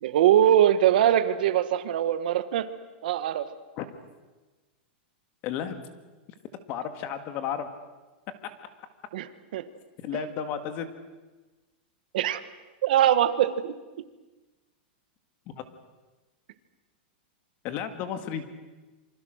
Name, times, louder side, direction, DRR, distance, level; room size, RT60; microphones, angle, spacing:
voice 1, 0.0-2.7 3.0-3.5 9.1-9.6 12.1-12.4 12.8-13.7, right 11 dB, 60° right, 12 dB, 1.4 m, -22 dB
voice 2, 5.4-5.8 6.7-7.7 10.0-10.9 17.6-18.4, left 8 dB, 30° left, 9 dB, 1.8 m, -32 dB
26.5 x 25.0 x 6.5 m, 1.2 s
supercardioid pair, 175°, 6 cm